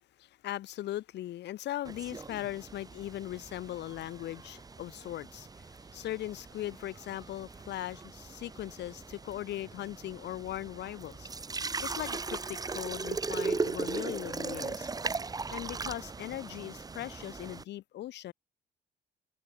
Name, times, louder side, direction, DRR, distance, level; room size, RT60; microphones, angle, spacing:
voice 1, 0.2-11.3 11.8-14.9 15.5-18.3, left 13 dB, 60° left, 0.4 m, -39 dB
sound 1, 1.8-17.6, right 4 dB, 20° right, 0.6 m, -39 dB
open air
cardioid pair, 90°, 20 cm